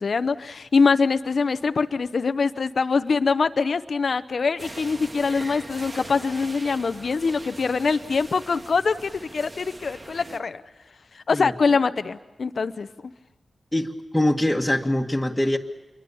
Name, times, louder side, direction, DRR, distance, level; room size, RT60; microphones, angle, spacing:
voice 1, 0.0-10.6 11.1-13.1, left 4 dB, 65° left, 11 dB, 0.7 m, -24 dB
sound 1, 4.6-10.4, right 2 dB, 40° right, 1.6 m, -41 dB
voice 2, 13.7-15.6, left 1 dB, 10° left, -1 dB, 1.9 m, -23 dB
27.0 x 23.0 x 7.1 m, 1.1 s
cardioid pair, 40°, 0 cm